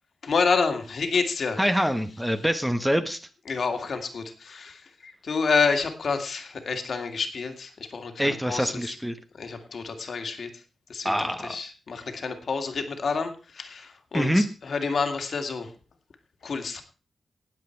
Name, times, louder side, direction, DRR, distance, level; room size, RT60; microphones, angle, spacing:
voice 1, 0.2-1.6 3.5-9.0 9.3-10.6 10.9-15.7 16.4-16.8, left 5 dB, 55° left, 6 dB, 2.2 m, -29 dB
voice 2, 1.6-3.2 8.2-9.2 11.0-11.5 14.1-14.4, equal, 5° right, 8 dB, 1.2 m, -25 dB
18.5 x 7.7 x 4.6 m, 0.35 s
wide cardioid pair, 125°, 0 cm